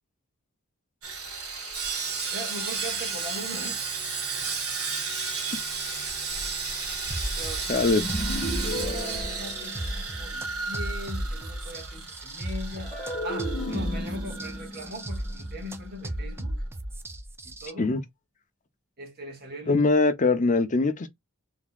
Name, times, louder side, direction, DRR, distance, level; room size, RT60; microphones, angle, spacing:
Sawing, 1.0-15.3 15.5-15.7 16.2-16.3, right 4 dB, 90° right, 1.6 m, -33 dB
voice 1, 2.3-3.8 7.4-7.9 8.4-12.9 13.2-16.7 17.4-17.9 19.0-19.9, equal, 45° right, 1.8 m, -40 dB
sound 1, 7.1-17.7, right 1 dB, 10° right, 0.4 m, -35 dB
voice 2, 7.7-8.0 17.8-18.0 19.7-21.1, left 3 dB, 35° left, 0.6 m, -22 dB
sound 2, 8.0-10.4 12.8-16.1, left 1 dB, 10° left, 1.4 m, -35 dB
3.8 x 3.6 x 2.3 m
head